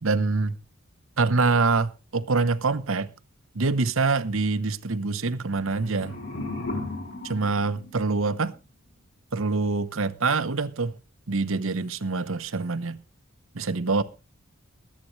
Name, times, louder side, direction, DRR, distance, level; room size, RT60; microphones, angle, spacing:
voice 1, 0.0-0.6 1.2-3.1 3.5-6.2 7.2-8.5 9.3-11.0 11.3-13.0 13.5-14.0, right 3 dB, 75° right, 0.9 m, -25 dB
sound 1, 5.5-8.5, left 2 dB, 50° left, 7.5 m, -36 dB
22.5 x 8.5 x 3.2 m
head